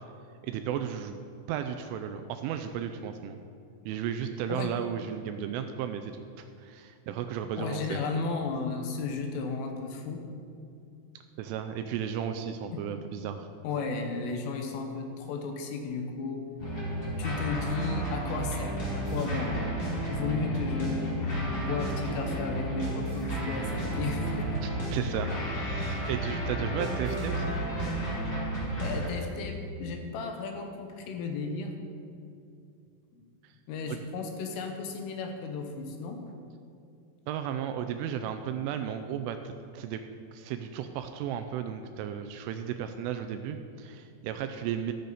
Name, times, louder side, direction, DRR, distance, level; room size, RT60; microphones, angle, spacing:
voice 1, 0.4-1.2 1.5-3.4 3.9-6.1 6.4-8.0 11.4-13.5 24.6-27.6 33.4-33.5 33.9-34.0 37.3-40.0 40.3-44.9, right 9 dB, 85° right, 7 dB, 2.9 m, -34 dB
voice 2, 7.6-10.2 12.7-12.8 13.6-16.4 17.2-19.6 20.1-24.5 28.8-31.8 33.7-36.2, left 4 dB, 80° left, 4 dB, 3.6 m, -34 dB
sound 1, 16.6-29.1, right 1 dB, 25° left, 2.6 m, -32 dB
13.5 x 13.0 x 4.1 m, 2.5 s
omnidirectional pair, 5.9 m